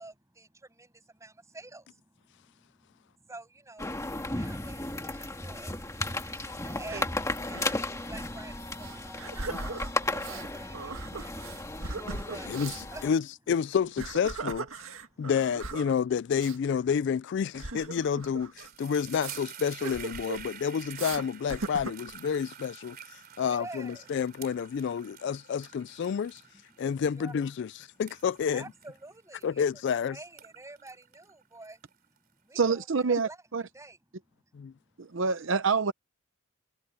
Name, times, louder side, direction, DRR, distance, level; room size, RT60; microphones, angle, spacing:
voice 1, 0.0-4.0 4.3-12.6 12.9-13.1 14.8-15.3 23.2-24.1 26.3-26.9 27.1-27.3 27.9-28.0 28.5-31.8 32.3-33.4 33.7-34.0 34.3-34.4 34.7-35.1, right 2 dB, 15° right, 7.8 m, -49 dB
sound 1, 3.8-13.1, left 2 dB, 15° left, 2.0 m, -35 dB
sound 2, 6.7-7.1 7.5-7.8 8.1-8.2 8.8-10.5 10.7-12.9 13.8-15.9 16.3-16.6 17.5-18.7 19.2-19.4 19.8-20.5 21.0-21.2 21.5-22.1, right 3 dB, 90° right, 1.9 m, -38 dB
voice 2, 12.5-14.7 15.2-26.4 26.8-28.6 29.4-30.2 34.5-34.7, left 7 dB, 60° left, 0.3 m, -29 dB
sound 3, 17.8-18.0 18.3-29.9 30.2-32.2, right 9 dB, 50° right, 3.4 m, -48 dB
voice 3, 32.6-33.6 35.0-35.9, right 5 dB, 65° right, 0.7 m, -27 dB
head